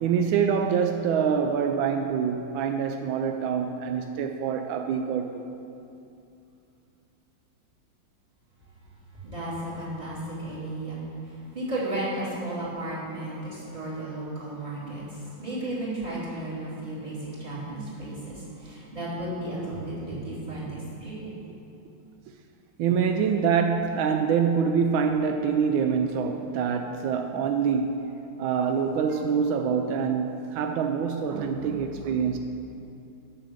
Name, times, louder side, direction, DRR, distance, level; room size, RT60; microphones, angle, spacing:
voice 1, 0.0-5.5 14.8-14.9 20.1-20.2 22.8-28.1 28.4-32.4, right 6 dB, 85° right, 6 dB, 1.3 m, -25 dB
voice 2, 9.2-11.0 11.3-21.4, right 1 dB, 20° right, -9 dB, 2.9 m, -34 dB
8.5 x 7.1 x 6.4 m, 2.7 s
omnidirectional pair, 2.1 m